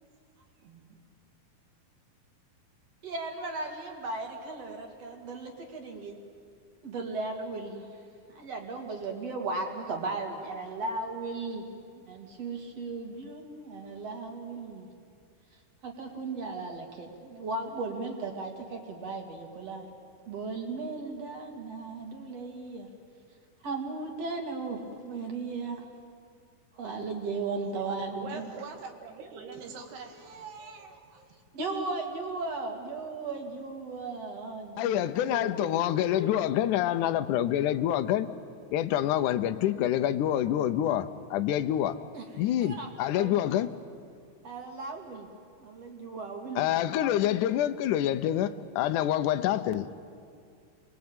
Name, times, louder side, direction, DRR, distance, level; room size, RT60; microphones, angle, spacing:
voice 1, 0.6-1.0 27.7-27.8 28.2-31.4, right 5 dB, 80° right, 3.9 m, -44 dB
voice 2, 3.0-6.2 6.8-7.9 8.3-11.7 11.9-14.9 15.8-19.9 20.3-22.9 23.6-25.8 26.8-28.5 31.5-36.0 42.1-42.3 42.6-43.6 44.4-45.3 45.6-46.6, right 3 dB, 45° right, 3.0 m, -36 dB
voice 3, 34.8-38.3 38.7-42.0 42.4-43.7 46.6-50.1, left 11 dB, 80° left, 1.8 m, -27 dB
27.0 x 21.0 x 8.9 m
omnidirectional pair, 4.6 m